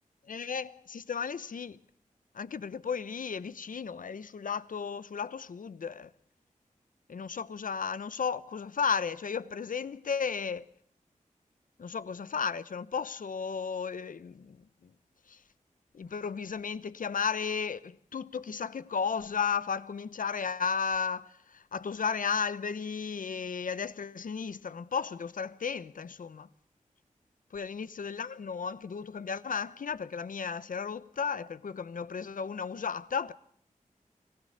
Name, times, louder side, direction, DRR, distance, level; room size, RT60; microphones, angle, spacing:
voice 1, 0.3-1.8 2.3-6.1 7.1-10.7 11.8-14.6 14.8-14.9 15.3-15.4 15.9-26.5 27.5-33.3, left 6 dB, 80° left, 1.0 m, -34 dB
26.0 x 16.5 x 6.6 m
wide cardioid pair, 95°, 14 cm